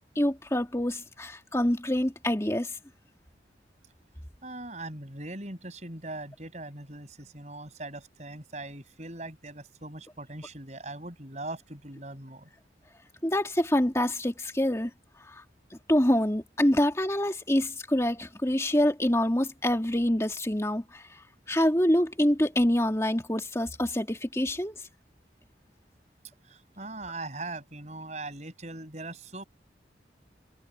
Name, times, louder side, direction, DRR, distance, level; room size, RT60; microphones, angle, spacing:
voice 1, 0.2-2.8 13.2-14.9 15.3-15.4 15.7-24.8, left 1 dB, 15° left, 2.5 m, -26 dB
voice 2, 4.4-12.5 26.5-29.4, right 2 dB, 40° right, 6.8 m, -40 dB
head